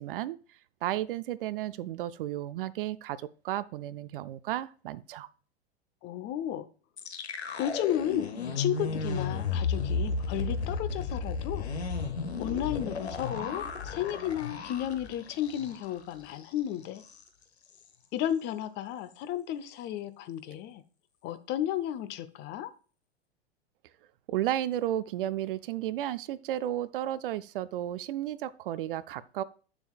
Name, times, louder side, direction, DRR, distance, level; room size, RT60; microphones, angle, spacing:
voice 1, 0.0-5.3 24.3-29.4, right 12 dB, 55° right, 16 dB, 0.5 m, -33 dB
voice 2, 6.0-6.7 7.6-8.3 8.6-11.7 12.4-17.0 18.1-20.8 21.2-22.7, left 11 dB, 35° left, 12 dB, 0.6 m, -33 dB
sound 1, 7.0-16.0 16.3-16.5 16.8-17.2, left 4 dB, 80° left, 1.0 m, -33 dB
7.1 x 6.9 x 2.3 m, 0.37 s
figure-of-eight pair, 90°, 32 cm